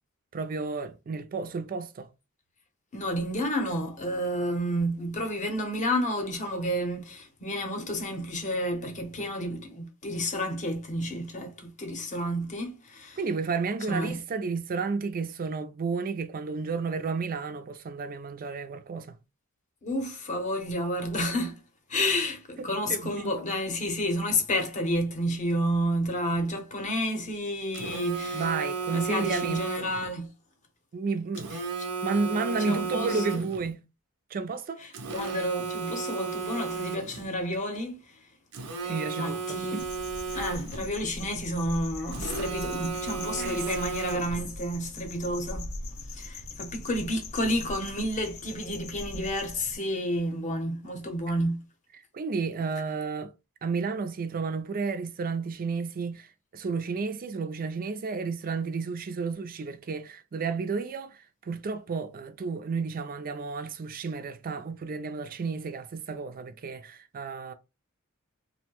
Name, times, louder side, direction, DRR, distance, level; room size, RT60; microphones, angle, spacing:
voice 1, 0.3-2.1 13.2-19.2 22.6-23.3 28.3-29.6 30.9-31.6 32.0-33.8 34.3-34.8 38.9-39.8 40.3-40.5 43.4-43.6 52.1-53.3 53.6-67.5, right 4 dB, 40° right, 0.4 m, -32 dB
voice 2, 2.9-13.2 13.9-14.2 19.8-21.6 21.9-28.5 28.9-30.3 31.8-31.9 32.6-33.2 34.8-38.2 38.8-39.8 40.3-45.7 46.1-51.6, equal, 35° left, 0.7 m, -30 dB
Telephone, 27.7-30.1 31.3-33.7 34.9-37.3 38.5-40.9 42.1-44.5, right 5 dB, 90° right, 0.6 m, -34 dB
sound 1, 39.8-49.8, left 2 dB, 70° left, 0.6 m, -40 dB
2.6 x 2.1 x 2.9 m
head